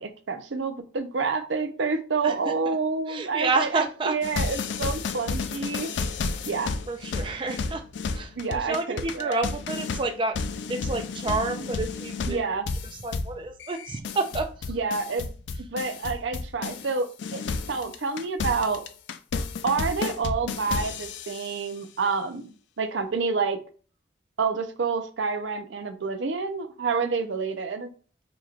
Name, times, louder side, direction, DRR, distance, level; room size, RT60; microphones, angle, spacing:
voice 1, 0.0-5.9 6.5-6.7 8.4-9.4 12.3-12.7 14.7-15.3 15.6-17.4 17.7-18.8 19.6-23.6 24.4-27.9, right 4 dB, 75° right, 0.6 m, -28 dB
voice 2, 3.1-4.1 6.4-6.5 6.9-7.8 8.1-10.4 10.7-12.5 13.0-14.7, right 3 dB, 25° right, 0.3 m, -29 dB
sound 1, 4.2-16.9 17.2-21.6, left 4 dB, 65° left, 0.4 m, -32 dB
5.1 x 2.9 x 2.4 m
head